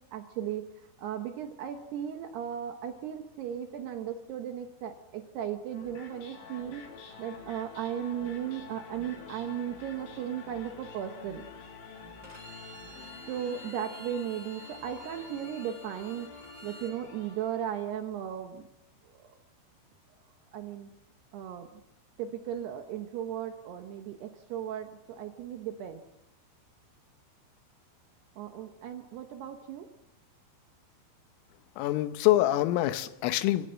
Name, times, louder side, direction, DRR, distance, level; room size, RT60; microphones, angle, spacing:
voice 1, 0.1-0.7 1.0-6.9 7.2-11.5 13.3-16.3 16.6-18.7 19.1-19.3 20.5-20.9 21.3-21.7 22.2-26.0 28.4-29.9, right 9 dB, 70° right, 6 dB, 2.7 m, -36 dB
sound 1, 5.7-17.9, left 5 dB, 70° left, 5.6 m, -48 dB
Bowed string instrument, 12.2-16.9, right 1 dB, 20° right, 4.2 m, -50 dB
voice 2, 31.8-33.7, left 15 dB, 90° left, 11 dB, 3.6 m, -25 dB
27.0 x 16.0 x 7.6 m, 0.95 s
omnidirectional pair, 5.7 m